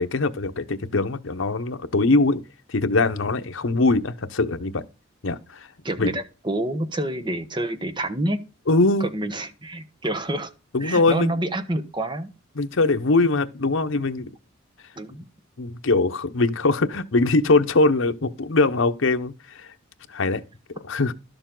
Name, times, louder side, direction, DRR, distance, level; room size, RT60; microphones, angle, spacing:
voice 1, 0.0-2.4 2.7-4.8 5.2-5.4 6.0-6.1 8.7-9.1 10.7-11.3 12.5-14.3 15.6-19.7 20.1-20.4 20.8-21.1, left 3 dB, 75° left, 0.9 m, -22 dB
voice 2, 5.8-8.4 9.0-10.5 10.8-12.3 15.0-15.2, right 1 dB, 25° right, 1.1 m, -28 dB
12.0 x 7.0 x 3.8 m
head